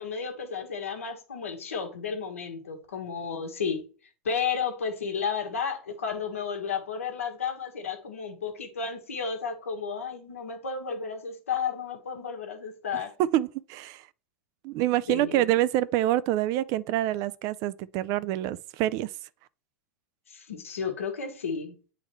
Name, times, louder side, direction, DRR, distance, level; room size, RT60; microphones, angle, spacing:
voice 1, 0.0-3.8 4.2-13.1 15.1-15.4 20.3-21.8, left 6 dB, 90° left, 1.3 m, -32 dB
voice 2, 13.3-14.0 14.6-19.1, right 14 dB, 50° right, 0.4 m, -26 dB
8.8 x 3.8 x 3.1 m
hypercardioid pair, 95°, 7 cm